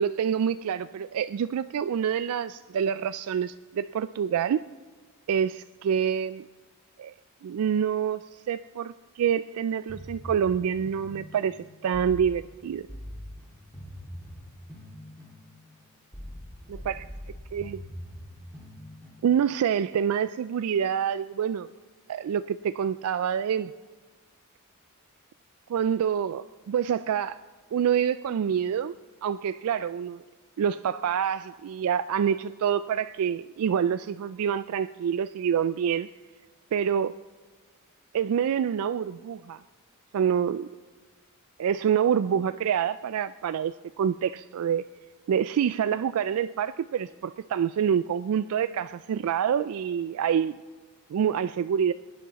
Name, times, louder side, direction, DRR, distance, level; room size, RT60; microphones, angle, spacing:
voice 1, 0.0-4.6 5.3-6.5 7.0-7.1 7.4-11.6 11.8-12.8 16.9-17.0 17.5-17.8 19.2-21.7 22.1-23.7 25.7-27.4 27.7-28.9 29.2-30.2 30.6-36.1 36.7-37.1 38.1-39.6 40.1-40.7 41.6-44.8 45.3-50.6 51.1-51.9, right 8 dB, 75° right, 13 dB, 0.3 m, -27 dB
sound 1, 9.9-19.7, equal, 5° left, 2.1 m, -43 dB
22.0 x 10.0 x 4.1 m, 1.4 s
head